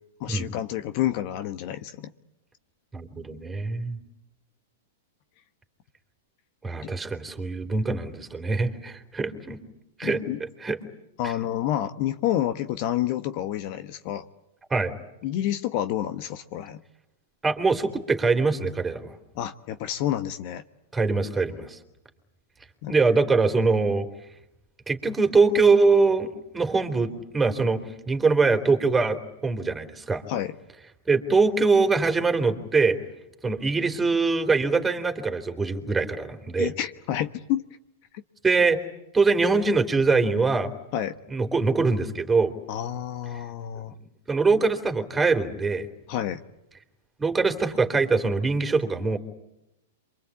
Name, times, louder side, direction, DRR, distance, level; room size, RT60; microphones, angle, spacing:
voice 1, 0.2-2.1 6.8-6.9 10.0-10.4 11.2-14.2 15.2-16.8 19.3-20.6 22.8-22.9 30.3-30.5 36.6-37.6 40.9-41.2 42.7-43.9 46.1-46.4, left 12 dB, 50° left, 10 dB, 1.2 m, -29 dB
voice 2, 2.9-4.0 6.6-9.6 10.0-10.2 10.6-10.8 11.2-11.3 14.7-14.9 17.4-19.1 20.9-21.8 22.9-24.1 24.9-30.2 31.1-33.0 33.4-36.7 38.4-38.8 39.1-40.7 41.3-42.5 44.3-45.9 47.2-49.2, right 4 dB, 10° right, 6 dB, 3.4 m, -23 dB
28.0 x 24.0 x 8.6 m, 0.89 s
hypercardioid pair, 110°, 0 cm